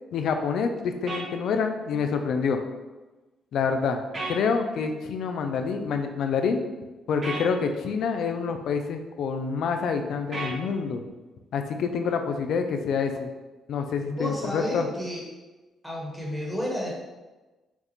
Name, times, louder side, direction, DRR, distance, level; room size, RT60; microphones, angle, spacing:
voice 1, 0.1-2.6 3.5-4.0 4.3-6.6 7.1-11.0 11.5-13.3 13.7-14.9, left 5 dB, 70° left, 6 dB, 0.4 m, -27 dB
sound 1, 1.1-1.3 4.1-4.4 7.2-7.5 10.3-10.6, right 2 dB, 40° right, 1.3 m, -32 dB
voice 2, 14.0-15.2 15.8-16.9, equal, 5° right, -4 dB, 1.3 m, -31 dB
5.2 x 2.4 x 3.0 m, 1.2 s
cardioid pair, 90°, 0 cm